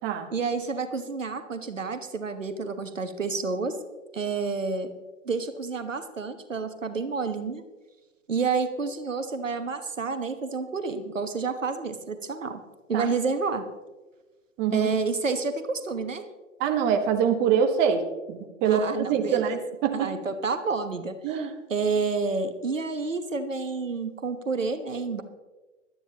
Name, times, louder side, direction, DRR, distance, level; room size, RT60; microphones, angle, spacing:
voice 1, 0.3-3.8 4.1-4.9 5.2-7.6 8.3-12.6 12.9-13.7 14.7-16.2 18.6-19.6 19.9-25.2, right 4 dB, 85° right, 9 dB, 1.3 m, -29 dB
voice 2, 16.6-18.0 18.3-20.1 21.2-21.5, right 7 dB, 30° right, 6 dB, 1.2 m, -24 dB
18.0 x 12.0 x 3.0 m, 1.2 s
figure-of-eight pair, 115°, 37 cm